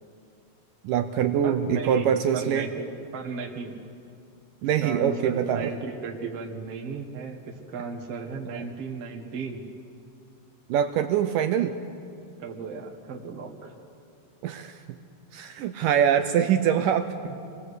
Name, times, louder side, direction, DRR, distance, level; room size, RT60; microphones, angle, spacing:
voice 1, 0.8-2.7 4.6-5.7 8.5-8.7 10.7-11.7 14.4-14.8 15.3-17.2, right 9 dB, 80° right, 8 dB, 1.9 m, -24 dB
voice 2, 1.4-2.9 3.1-3.8 4.6-9.6 12.4-13.7 17.2-17.4, right 4 dB, 55° right, 0 dB, 1.9 m, -35 dB
28.0 x 21.5 x 8.1 m, 2.4 s
omnidirectional pair, 4.8 m